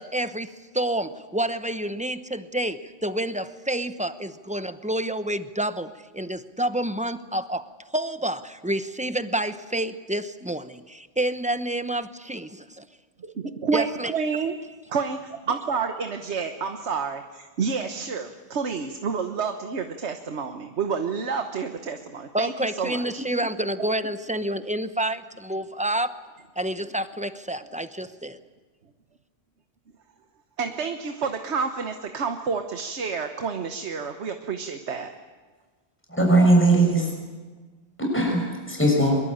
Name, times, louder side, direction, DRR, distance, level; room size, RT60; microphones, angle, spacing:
voice 1, 0.0-12.8 13.7-14.1 22.3-26.2 26.6-28.4, right 1 dB, 5° right, 10 dB, 0.9 m, -29 dB
voice 2, 13.2-14.6 14.9-23.1 23.8-23.9 30.6-35.1, right 5 dB, 85° right, 6 dB, 1.5 m, -29 dB
voice 3, 36.1-37.1 38.0-39.2, right 2 dB, 10° left, -1 dB, 6.6 m, -19 dB
24.5 x 22.0 x 8.8 m, 1.4 s
omnidirectional pair, 1.1 m